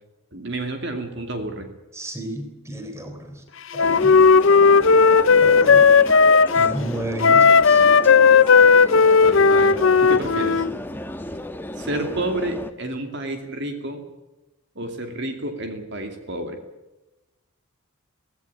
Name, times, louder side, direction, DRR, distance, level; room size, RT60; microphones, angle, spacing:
voice 1, 0.3-1.7 9.2-10.7 11.8-14.0 14.8-16.6, right 1 dB, 50° right, 5 dB, 2.5 m, -30 dB
voice 2, 1.9-3.4 3.7-4.2 5.4-5.9 6.5-7.9, right 1 dB, 10° right, 5 dB, 3.8 m, -32 dB
Wind instrument woodwind instrument, 3.8-6.8 7.2-10.7, left 5 dB, 65° left, 0.7 m, -14 dB
sound 1, 3.8-12.7, left 1 dB, 10° left, 1.2 m, -34 dB
18.0 x 17.0 x 10.0 m, 1.0 s
head